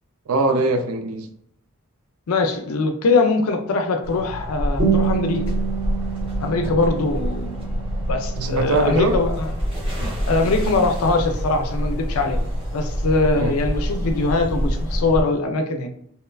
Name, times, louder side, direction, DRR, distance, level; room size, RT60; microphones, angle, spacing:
voice 1, 0.3-1.3 8.4-9.2 13.4-13.5, right 2 dB, 75° right, 0.4 m, -21 dB
voice 2, 2.3-5.4 6.4-7.6 8.1-9.5 10.3-12.4 12.7-15.9, left 3 dB, 80° left, 0.4 m, -22 dB
sound 1, 4.0-15.2, equal, 25° right, 0.9 m, -27 dB
sound 2, 4.8-9.8, right 7 dB, 45° right, 1.1 m, -28 dB
sound 3, 8.3-15.0, equal, 10° left, 0.7 m, -34 dB
2.9 x 2.2 x 2.3 m
head